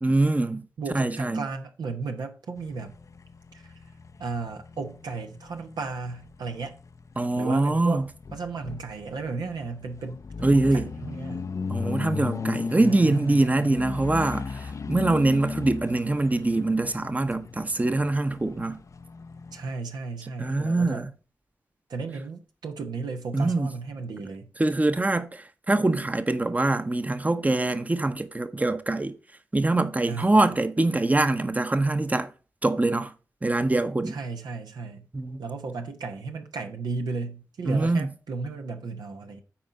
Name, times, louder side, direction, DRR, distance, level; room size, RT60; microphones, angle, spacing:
voice 1, 0.0-0.7 0.9-1.4 7.2-8.0 10.4-10.9 11.7-18.8 20.4-21.1 23.3-23.7 24.6-29.1 29.5-32.3 32.6-33.1 33.4-34.2 35.1-35.4 37.7-38.1, right 2 dB, 20° right, 0.8 m, -24 dB
voice 2, 0.8-2.9 3.5-3.8 4.2-6.8 7.3-8.0 8.3-11.5 12.7-14.0 19.5-21.1 21.9-24.5 30.1-30.5 34.1-35.1 35.4-39.4, right 4 dB, 85° right, 1.0 m, -35 dB
sound 1, 2.6-19.7, left 5 dB, 50° left, 0.5 m, -37 dB
8.7 x 4.3 x 5.3 m
cardioid pair, 45°, 7 cm